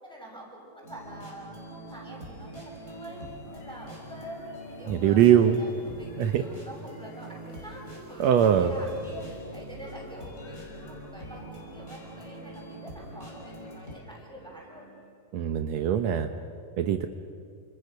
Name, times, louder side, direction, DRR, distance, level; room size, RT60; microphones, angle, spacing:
voice 1, 0.0-14.9, equal, ahead, -2 dB, 7.1 m, -45 dB
sound 1, 0.8-13.9, right 1 dB, 20° left, 5.6 m, -44 dB
sound 2, 2.1-15.1, left 1 dB, 75° left, 6.5 m, -55 dB
voice 2, 4.9-5.6 6.2-6.4 8.2-8.7 15.3-16.3 16.8-17.1, right 9 dB, 80° right, 7 dB, 1.5 m, -21 dB
30.0 x 27.5 x 6.7 m, 2.3 s
omnidirectional pair, 4.4 m